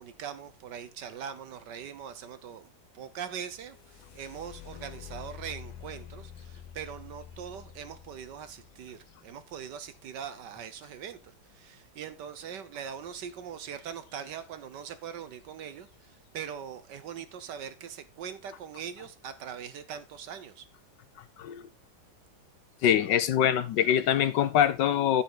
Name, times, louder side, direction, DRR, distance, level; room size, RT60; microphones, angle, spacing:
voice 1, 0.0-2.7 2.9-20.7, right 8 dB, 65° right, 1.4 m, -41 dB
sound 1, 3.3-11.1 13.2-13.3 13.7-14.3 14.9-15.0 15.5-15.9, left 9 dB, 90° left, 2.1 m, -48 dB
voice 2, 22.8-25.2, left 10 dB, 70° left, 1.3 m, -24 dB
10.5 x 8.0 x 3.9 m
omnidirectional pair, 2.1 m